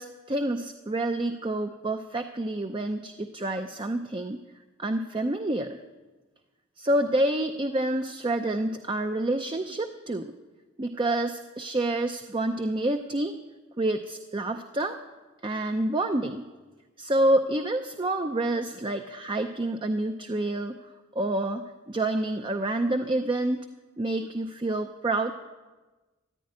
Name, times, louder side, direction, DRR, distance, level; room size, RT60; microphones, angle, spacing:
voice 1, 0.0-4.4 4.8-5.8 6.8-10.3 10.8-13.4 13.8-15.0 15.4-16.5 17.0-20.8 21.1-23.6 24.0-25.3, right 1 dB, 25° right, 6 dB, 0.6 m, -28 dB
14.5 x 10.5 x 9.6 m, 1.2 s
head